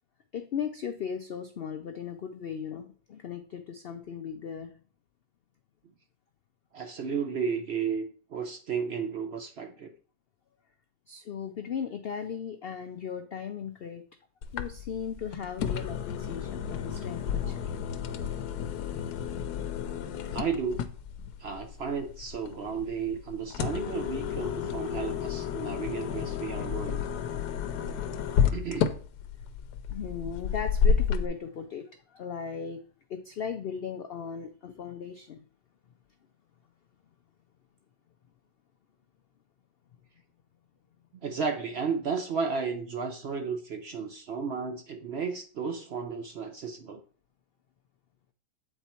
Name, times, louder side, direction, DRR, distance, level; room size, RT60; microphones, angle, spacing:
voice 1, 0.3-4.8 11.1-14.0 14.5-17.7 29.9-32.8 33.1-35.4, left 7 dB, 70° left, 7 dB, 0.5 m, -37 dB
voice 2, 6.7-9.9 20.3-20.9 21.4-27.0 28.5-28.9 41.1-47.0, right 5 dB, 60° right, 6 dB, 0.7 m, -33 dB
sound 1, 14.4-31.3, left 7 dB, 85° left, 1.2 m, -31 dB
8.0 x 4.5 x 4.3 m, 0.41 s
omnidirectional pair, 1.6 m